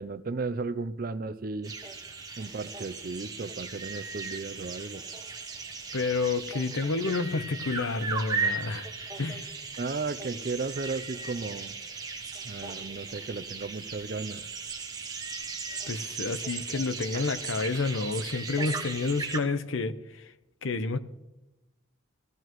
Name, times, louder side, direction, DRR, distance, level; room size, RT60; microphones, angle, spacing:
voice 1, 0.0-1.7 2.4-5.0 9.8-11.8 12.4-14.4 17.1-17.2, right 3 dB, 45° right, 0.5 m, -34 dB
sound 1, 1.6-19.4, right 4 dB, 20° right, 1.0 m, -37 dB
voice 2, 5.9-8.9 9.2-9.5 15.9-20.3 20.6-21.0, left 3 dB, 85° left, 0.8 m, -30 dB
16.5 x 15.0 x 3.1 m
head